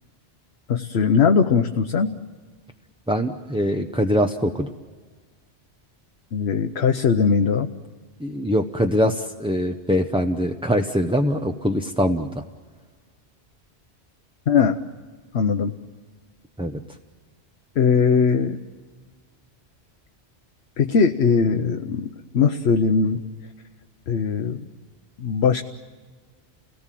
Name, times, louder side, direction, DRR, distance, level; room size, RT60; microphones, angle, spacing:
voice 1, 0.7-2.1 6.3-7.7 14.5-14.8 15.3-15.7 17.8-18.6 20.8-23.2 24.1-24.6 25.2-25.6, left 5 dB, 70° left, 5 dB, 1.1 m, -20 dB
voice 2, 3.1-4.7 8.2-12.4 16.6-16.8, equal, 5° right, 3 dB, 0.7 m, -23 dB
29.5 x 18.5 x 7.5 m, 1.5 s
omnidirectional pair, 1.1 m